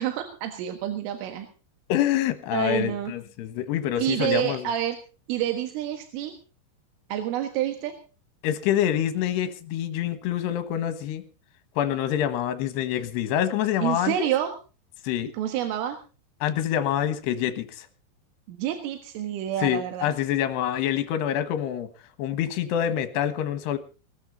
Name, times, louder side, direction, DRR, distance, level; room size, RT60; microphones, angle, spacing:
voice 1, 0.0-1.5 2.5-3.1 4.0-5.0 5.3-6.3 7.1-7.9 13.8-14.5 15.3-16.0 18.5-20.1, right 11 dB, 85° right, 7 dB, 4.1 m, -28 dB
voice 2, 1.9-4.7 8.4-11.2 11.8-14.3 15.0-15.3 16.4-17.9 19.6-21.9 22.2-23.8, left 11 dB, 70° left, 10 dB, 3.1 m, -26 dB
20.0 x 14.0 x 4.0 m, 0.34 s
omnidirectional pair, 5.6 m